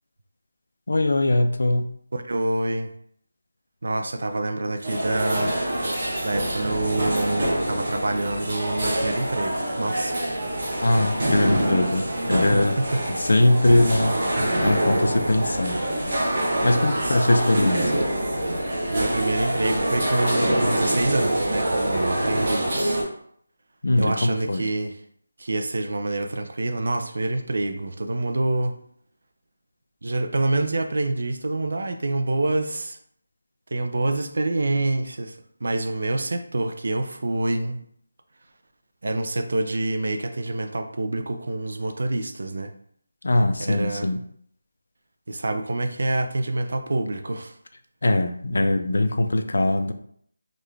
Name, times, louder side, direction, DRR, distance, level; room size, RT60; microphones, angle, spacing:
voice 1, 0.9-1.9 10.8-12.8 13.2-14.2 14.6-15.8 16.6-18.0 23.8-24.7 43.2-44.2 48.0-49.9, left 1 dB, 60° left, 8 dB, 0.4 m, -21 dB
voice 2, 2.1-2.9 3.8-5.6 6.2-10.2 12.5-13.0 17.0-17.2 18.9-23.0 24.0-25.0 25.4-28.8 30.0-33.0 33.7-37.8 39.0-42.7 43.6-44.1 45.3-47.5, right 2 dB, 55° right, 7 dB, 0.4 m, -26 dB
sound 1, 4.8-23.0, right 1 dB, 30° right, 1.0 m, -25 dB
3.8 x 2.3 x 3.2 m, 0.65 s
figure-of-eight pair, 175°, 0 cm